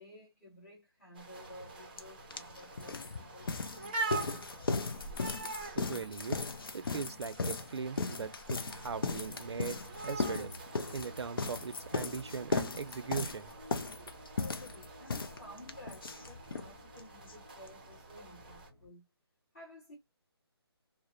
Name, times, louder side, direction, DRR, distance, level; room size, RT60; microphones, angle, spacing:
voice 1, 0.0-4.9 14.4-19.1 19.5-20.0, left 1 dB, 40° left, 1.3 m, -54 dB
sound 1, 1.1-18.7, right 3 dB, 20° right, 0.5 m, -46 dB
sound 2, 2.0-2.1 2.3-16.7 17.0-17.1 17.3-17.4 17.7-17.8, left 4 dB, 55° left, 0.5 m, -37 dB
voice 2, 5.4-6.4 6.7-10.5 10.9-14.1, right 5 dB, 85° right, 0.5 m, -40 dB
sound 3, 8.6-18.9, equal, 10° left, 1.2 m, -54 dB
2.7 x 2.0 x 2.4 m
hypercardioid pair, 170°, 14 cm